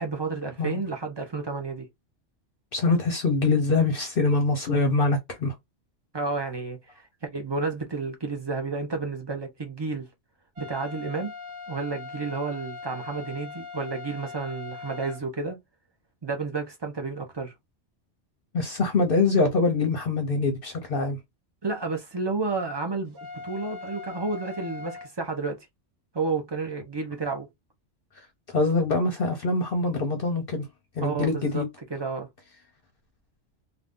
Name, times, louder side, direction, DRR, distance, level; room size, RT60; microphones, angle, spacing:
voice 1, 0.0-1.9 6.1-10.1 10.6-11.3 11.7-15.6 16.2-17.5 21.6-23.2 23.4-25.6 26.1-27.5 31.0-31.6 31.9-32.3, right 4 dB, 35° right, 0.4 m, -31 dB
voice 2, 2.7-5.5 18.5-21.2 28.5-30.7 31.0-31.7, left 3 dB, 55° left, 0.8 m, -24 dB
sound 1, 10.6-15.2 23.2-25.1, left 5 dB, 70° right, 1.1 m, -40 dB
2.5 x 2.3 x 3.5 m
omnidirectional pair, 1.2 m